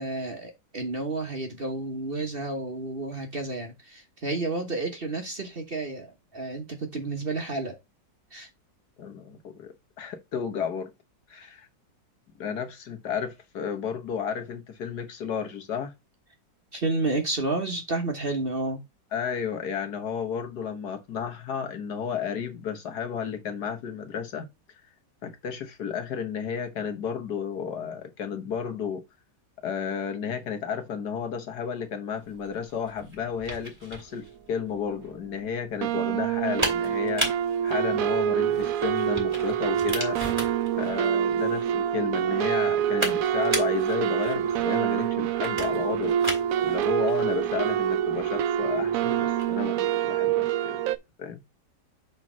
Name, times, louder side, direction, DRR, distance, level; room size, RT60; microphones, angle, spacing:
voice 1, 0.0-7.8 8.3-8.5 16.7-18.8, right 2 dB, 35° right, 1.3 m, -31 dB
voice 2, 9.0-10.9 11.3-11.7 12.4-15.9 19.1-24.5 25.2-29.0 29.6-40.2 40.8-46.2 46.6-50.8 51.2-51.4, left 7 dB, 65° left, 1.6 m, -32 dB
sound 1, 32.3-49.6, right 1 dB, 5° right, 3.8 m, -37 dB
sound 2, 34.6-34.7 34.9-35.3 35.8-51.0, right 10 dB, 70° right, 0.8 m, -26 dB
5.8 x 4.1 x 6.1 m
omnidirectional pair, 2.0 m